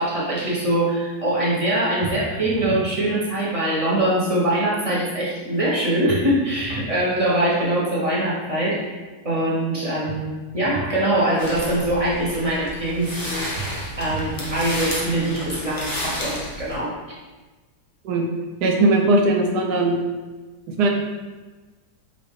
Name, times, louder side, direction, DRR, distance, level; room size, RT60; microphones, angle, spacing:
voice 1, 0.0-8.9 9.2-13.5 14.0-17.0, right 1 dB, 25° right, -7 dB, 0.8 m, -23 dB
sound 1, 2.0-2.9 6.1-6.9 10.0-10.9 13.5-14.5, right 3 dB, 60° right, 1.0 m, -33 dB
sound 2, 11.4-16.8, equal, 20° left, 0.5 m, -31 dB
voice 2, 18.6-20.1 20.8-20.9, right 2 dB, 85° right, 2 dB, 1.2 m, -19 dB
5.3 x 2.4 x 3.3 m, 1.3 s
omnidirectional pair, 1.7 m